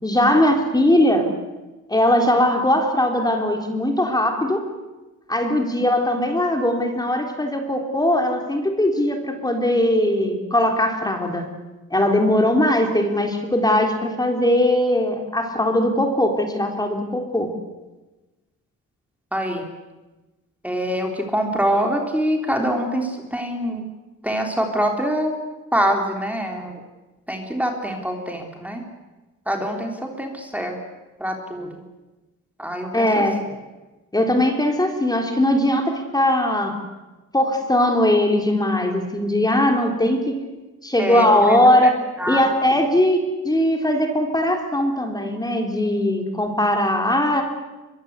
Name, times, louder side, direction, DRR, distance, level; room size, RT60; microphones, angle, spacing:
voice 1, 0.0-1.3 1.9-4.6 5.3-11.4 11.9-17.5 32.9-33.4 34.1-36.8 37.3-40.4 40.8-41.9 42.3-47.4, left 1 dB, 15° left, 3 dB, 3.9 m, -20 dB
voice 2, 19.3-19.7 20.6-23.9 24.2-25.3 25.7-26.8 27.3-28.8 29.5-30.8 31.2-31.8 32.6-33.2 41.0-41.9 42.2-42.4 42.7-42.8, equal, 5° right, 2 dB, 3.7 m, -25 dB
23.0 x 23.0 x 8.3 m, 1.2 s
cardioid pair, 90°, 30 cm